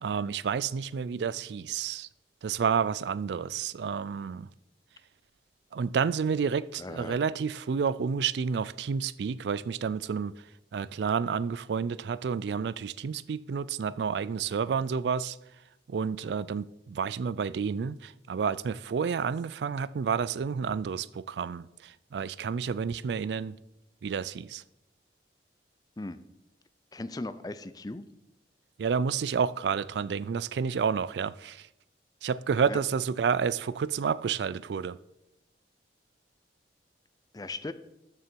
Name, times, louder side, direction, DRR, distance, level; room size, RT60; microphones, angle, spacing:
voice 1, 0.0-2.1 2.4-4.5 5.7-10.3 10.7-15.4 15.9-23.6 24.0-24.6 28.8-31.7 32.2-35.0, right 6 dB, 75° right, 0.4 m, -30 dB
voice 2, 6.8-7.2 26.0-26.2 26.9-28.0 32.7-32.8 37.3-37.7, left 2 dB, 20° left, 0.5 m, -37 dB
13.0 x 6.7 x 4.5 m
head